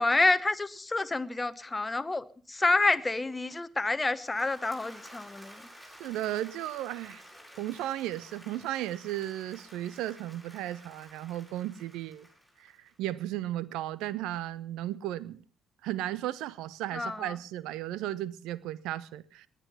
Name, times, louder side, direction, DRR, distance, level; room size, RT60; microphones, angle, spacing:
voice 1, 0.0-5.7 16.9-17.4, left 2 dB, 20° left, 1.1 m, -28 dB
Applause / Crowd, 4.0-13.2, equal, 10° right, 7.9 m, -52 dB
voice 2, 6.0-7.2 7.6-12.3 12.6-15.4 15.8-19.5, right 14 dB, 65° right, 0.8 m, -35 dB
20.0 x 11.0 x 5.8 m
figure-of-eight pair, 45°, 0 cm